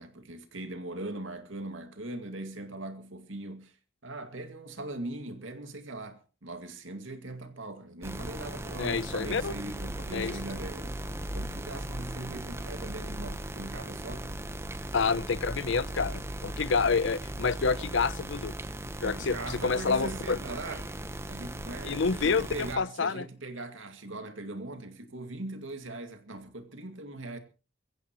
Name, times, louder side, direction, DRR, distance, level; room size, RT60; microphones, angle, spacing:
voice 1, 0.0-3.8 4.0-11.0 11.3-14.4 19.0-20.9 21.3-27.4, right 2 dB, 80° right, 2.2 m, -40 dB
sound 1, 8.0-22.8, right 1 dB, 15° right, 1.0 m, -38 dB
voice 2, 8.8-9.5 10.1-10.3 14.9-18.5 19.0-20.4 21.8-23.2, left 5 dB, 70° left, 0.7 m, -28 dB
22.5 x 15.5 x 3.0 m
head